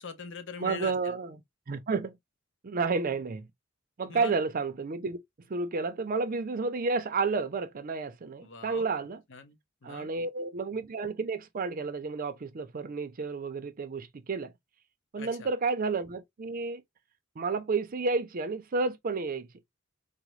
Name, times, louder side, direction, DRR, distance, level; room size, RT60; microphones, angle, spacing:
voice 1, 0.0-1.2 4.0-4.3 8.4-8.9 9.3-10.1 15.2-15.5, left 5 dB, 65° left, 0.7 m, -42 dB
voice 2, 0.6-1.4 1.7-2.2 2.6-3.5 4.0-5.2 5.5-9.2 9.8-14.5 15.1-16.8 17.4-19.5, right 4 dB, 45° right, 0.5 m, -31 dB
3.7 x 2.1 x 3.0 m
head